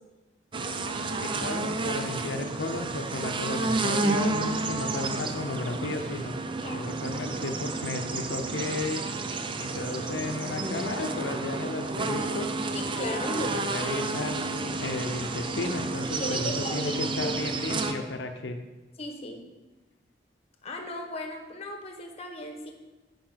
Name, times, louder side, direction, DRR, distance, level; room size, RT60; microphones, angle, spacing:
sound 1, 0.5-17.9, right 3 dB, 30° right, 0.5 m, -31 dB
voice 1, 1.2-6.5 6.7-9.0 9.6-12.5 13.3-18.6, left 2 dB, 85° left, 5 dB, 0.6 m, -34 dB
voice 2, 6.6-7.0 12.7-13.6 16.2-17.4 19.0-19.4 20.6-22.7, left 1 dB, 35° left, 4 dB, 1.0 m, -35 dB
8.7 x 5.4 x 3.9 m, 1.2 s
head